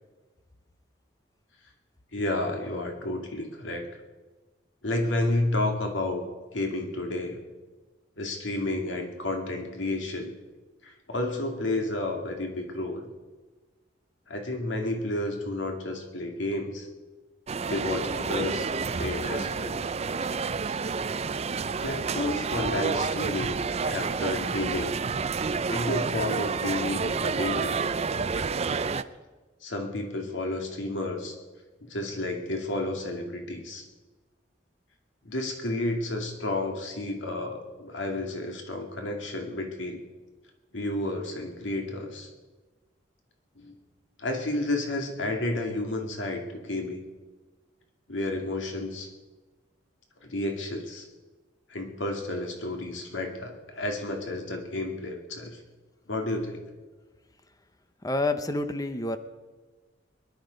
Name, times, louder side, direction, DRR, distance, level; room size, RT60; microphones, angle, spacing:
voice 1, 2.1-3.9 4.8-6.2 6.5-7.4 8.2-10.3 10.8-13.0 14.3-16.9 17.7-18.7 19.0-19.8 21.8-25.0 25.7-27.8 29.6-31.4 31.8-33.9 35.2-40.0 40.7-42.3 43.6-43.8 44.2-47.0 48.1-49.1 50.2-51.1 51.7-55.6 56.1-56.6, left 2 dB, 90° left, 3 dB, 2.3 m, -31 dB
sound 1, 17.5-29.0, right 5 dB, 35° right, 0.5 m, -29 dB
voice 2, 58.0-59.2, left 2 dB, 20° left, 9 dB, 0.9 m, -28 dB
22.0 x 10.5 x 5.2 m, 1.3 s
head